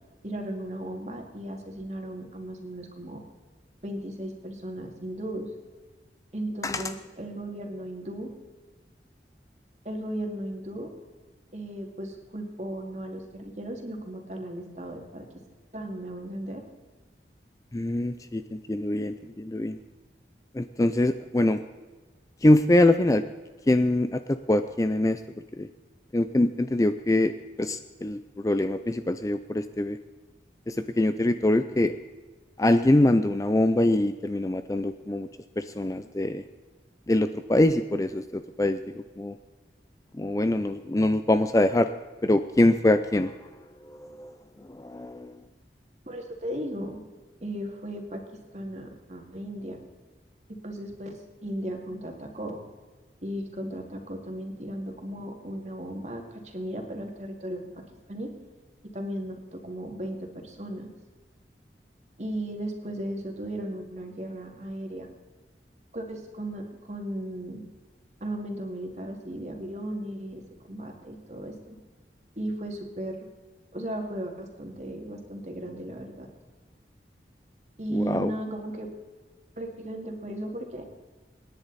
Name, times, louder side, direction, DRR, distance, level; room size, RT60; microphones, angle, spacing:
voice 1, 0.2-3.2 3.8-5.5 6.3-8.3 9.8-10.9 11.5-15.3 15.7-16.6 46.1-47.0 47.4-48.2 48.5-49.8 50.5-52.6 53.2-57.6 58.1-58.3 58.9-60.9 62.2-65.1 65.9-67.6 68.2-71.8 72.4-73.3 73.7-76.3 77.8-78.9 79.6-80.9, right 1 dB, 40° right, 2 dB, 2.4 m, -36 dB
voice 2, 17.7-19.8 20.5-21.6 22.4-23.2 23.7-25.2 25.6-25.7 26.1-30.0 30.7-31.9 32.6-35.3 35.6-36.4 37.1-38.8 39.2-39.4 40.1-41.9 42.2-43.3 43.8-45.4 77.9-78.3, left 1 dB, 20° left, 10 dB, 0.4 m, -24 dB
26.0 x 10.5 x 4.1 m, 1.3 s
head